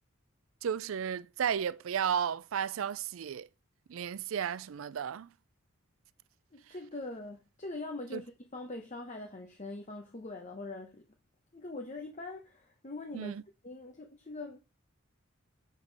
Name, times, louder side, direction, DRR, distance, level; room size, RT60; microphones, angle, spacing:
voice 1, 0.6-3.5 3.9-5.3 8.1-8.2 13.1-13.4, right 8 dB, 75° right, 0.4 m, -33 dB
voice 2, 6.5-11.1 11.5-13.3 13.6-14.6, left 2 dB, 35° left, 0.9 m, -42 dB
7.7 x 5.2 x 5.3 m
head